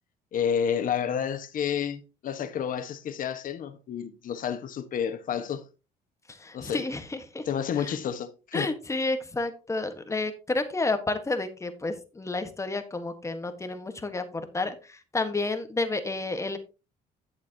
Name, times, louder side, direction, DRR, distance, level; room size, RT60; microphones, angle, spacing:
voice 1, 0.3-5.6 6.5-6.8 7.4-8.7, left 8 dB, 55° left, 1.4 m, -30 dB
voice 2, 6.3-7.4 7.8-7.9 8.5-16.6, left 2 dB, 15° left, 1.4 m, -30 dB
11.0 x 7.4 x 2.9 m
cardioid pair, 110°, 17 cm